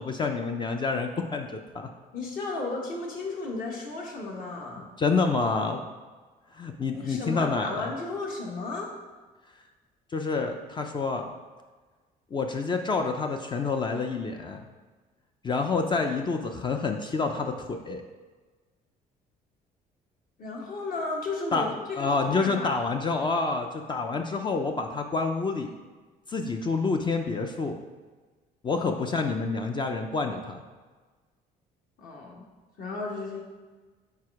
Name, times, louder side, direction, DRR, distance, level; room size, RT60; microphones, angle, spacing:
voice 1, 0.0-1.9 4.8-5.8 6.5-7.9 10.1-11.3 12.3-14.6 15.4-18.0 21.5-25.7 26.3-27.8 28.6-30.6, left 4 dB, 25° left, 4 dB, 0.4 m, -28 dB
voice 2, 2.1-4.9 6.9-8.9 20.4-22.7 28.8-28.9 32.0-32.5 32.8-33.4, left 3 dB, 55° left, -1 dB, 1.4 m, -34 dB
4.7 x 4.2 x 4.7 m, 1.3 s
cardioid pair, 110°, 17 cm